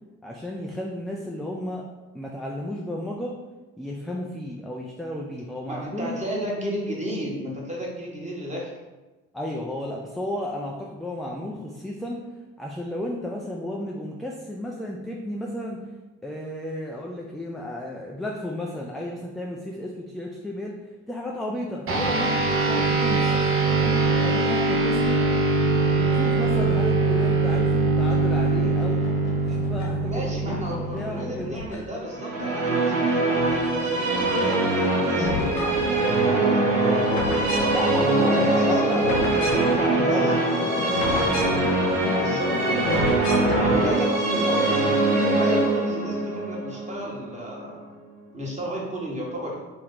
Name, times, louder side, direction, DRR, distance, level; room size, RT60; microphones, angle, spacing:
voice 1, 0.2-1.8 2.1-3.4 3.8-6.1 9.3-12.2 12.6-15.8 16.2-20.7 21.1-25.3 26.0-29.0 29.5-31.6 37.7-40.4 40.8-41.7 43.7-44.1, left 1 dB, ahead, -2 dB, 0.5 m, -33 dB
voice 2, 5.7-8.7 29.9-37.7 37.9-40.7 42.1-43.0 43.5-47.8 48.3-49.6, equal, 20° right, -3 dB, 1.4 m, -33 dB
sound 1, 21.9-31.6, right 3 dB, 40° right, 0.9 m, -22 dB
sound 2, 28.6-30.0 30.5-32.1 32.4-33.7 34.0-43.9, left 4 dB, 75° left, 0.9 m, -31 dB
Musical instrument, 32.1-47.6, right 3 dB, 80° right, 0.7 m, -23 dB
3.1 x 3.0 x 3.9 m, 1.1 s
figure-of-eight pair, 45°, 34 cm